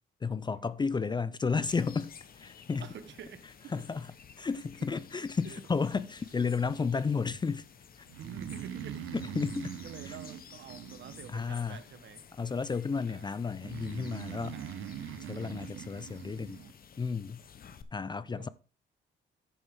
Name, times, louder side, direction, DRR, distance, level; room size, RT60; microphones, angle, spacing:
voice 1, 0.2-2.9 3.7-7.7 8.0-8.1 9.1-9.7 10.0-10.2 11.3-11.8 12.3-14.6 15.2-16.6 17.0-17.4 17.9-18.5, left 5 dB, 20° left, 0.4 m, -32 dB
sound 1, 1.7-17.8, left 7 dB, 50° left, 0.9 m, -54 dB
voice 2, 2.8-3.8 5.4-5.6 8.2-9.0 9.5-12.2 13.1-13.4 14.5-15.4 18.2-18.5, right 8 dB, 65° right, 1.0 m, -48 dB
Breathing, 8.1-11.8 13.6-16.7, right 9 dB, 85° right, 0.8 m, -42 dB
10.5 x 6.8 x 3.6 m
cardioid pair, 90°, 20 cm